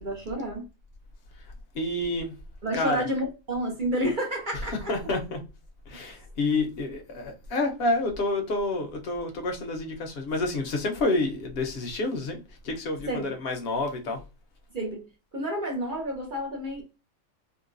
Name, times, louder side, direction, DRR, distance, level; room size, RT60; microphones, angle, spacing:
voice 1, 0.0-0.6 2.6-4.9 13.1-13.3 14.7-15.0 15.3-16.8, equal, 50° right, 0.7 m, -30 dB
voice 2, 1.7-2.3 2.7-3.0 4.9-5.4 5.9-14.2, left 2 dB, 55° left, 0.9 m, -29 dB
3.7 x 2.2 x 2.5 m
omnidirectional pair, 1.4 m